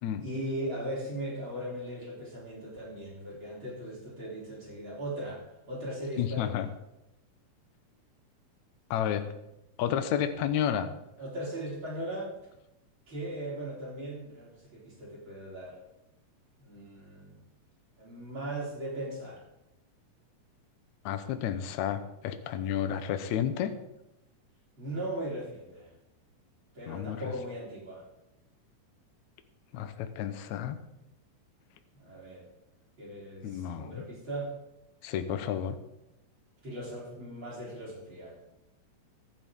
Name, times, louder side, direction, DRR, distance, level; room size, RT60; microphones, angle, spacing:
voice 1, 0.2-6.7 11.2-12.3 13.1-15.8 16.6-17.5 18.0-19.4 24.8-25.9 26.7-28.1 31.9-32.5 33.0-34.5 36.6-38.4, right 1 dB, 40° right, -4 dB, 4.0 m, -38 dB
voice 2, 6.2-6.7 8.9-9.3 9.8-10.9 21.1-23.7 26.9-27.2 29.7-30.8 33.4-34.0 35.0-35.8, left 9 dB, 70° left, 9 dB, 2.1 m, -31 dB
23.5 x 8.2 x 3.7 m, 0.90 s
omnidirectional pair, 3.7 m